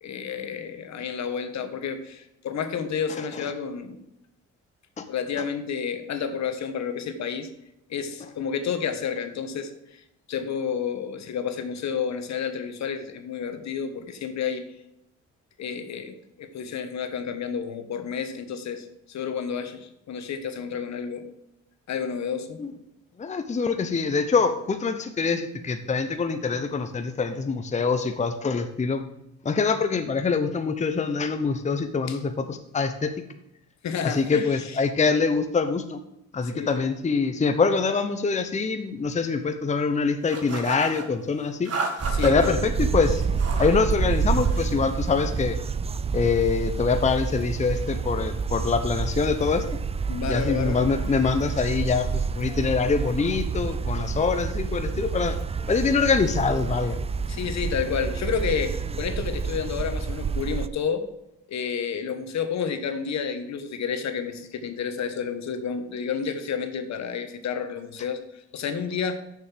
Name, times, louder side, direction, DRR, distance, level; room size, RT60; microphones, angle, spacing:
voice 1, 0.0-4.0 5.1-7.5 7.9-9.7 10.3-14.6 15.6-21.3 21.9-22.6 32.1-32.2 33.8-34.8 36.5-36.9 42.1-42.6 50.1-50.8 57.3-61.0 61.5-69.2, left 6 dB, 65° left, 8 dB, 1.3 m, -30 dB
voice 2, 23.2-29.0 29.4-33.1 34.0-36.0 36.3-41.7 42.2-43.2 43.6-45.6 46.1-49.7 50.3-55.4 55.7-57.0, left 4 dB, 25° left, 7 dB, 0.8 m, -24 dB
sound 1, 40.3-41.1 41.6-42.5 43.2-43.8 44.1-44.7, right 3 dB, 55° right, 1.8 m, -33 dB
sound 2, 42.0-60.7, right 5 dB, 20° right, 0.4 m, -28 dB
6.7 x 6.4 x 7.4 m, 0.84 s
cardioid pair, 90°, 30 cm